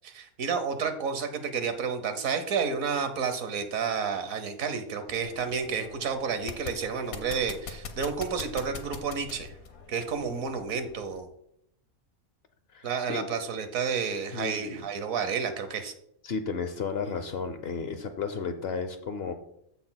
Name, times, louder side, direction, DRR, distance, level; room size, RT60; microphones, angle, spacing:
voice 1, 0.0-9.5 9.9-11.3 12.8-15.9, right 6 dB, 75° right, 9 dB, 1.3 m, -30 dB
sound 1, 5.1-11.2, left 5 dB, 85° left, 1.4 m, -43 dB
voice 2, 12.7-13.3 14.3-14.8 16.2-19.3, left 5 dB, 55° left, 8 dB, 0.9 m, -33 dB
14.0 x 6.0 x 2.2 m, 0.73 s
omnidirectional pair, 1.5 m